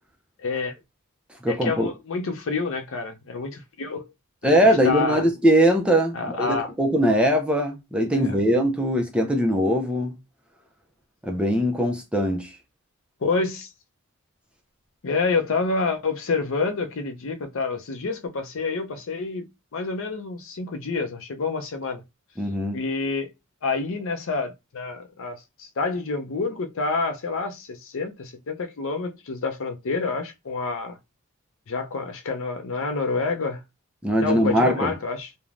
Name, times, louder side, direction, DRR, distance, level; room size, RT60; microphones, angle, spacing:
voice 1, 0.4-0.7 1.5-4.1 4.4-4.6 4.8-5.2 6.1-6.7 8.1-8.4 13.2-13.7 15.0-22.0 22.7-23.3 23.6-31.0 31.7-33.6 34.2-35.3, left 4 dB, 60° left, 0.5 m, -28 dB
voice 2, 1.4-1.9 4.4-10.2 11.2-12.5 22.4-22.8 34.0-34.9, equal, 5° right, 0.4 m, -21 dB
3.2 x 2.1 x 2.4 m
head